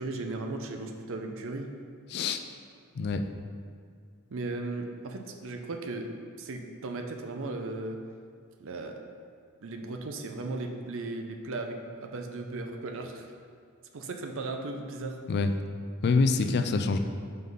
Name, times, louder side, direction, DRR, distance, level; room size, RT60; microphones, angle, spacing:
voice 1, 0.0-1.7 4.3-6.1 6.4-8.0 8.6-9.0 9.6-13.3 13.9-15.2, right 2 dB, 65° right, 4 dB, 0.6 m, -36 dB
voice 2, 2.1-2.4 3.0-3.2 15.3-15.5 16.0-17.0, left 4 dB, 50° left, 7 dB, 0.4 m, -25 dB
5.3 x 4.0 x 5.3 m, 2.2 s
head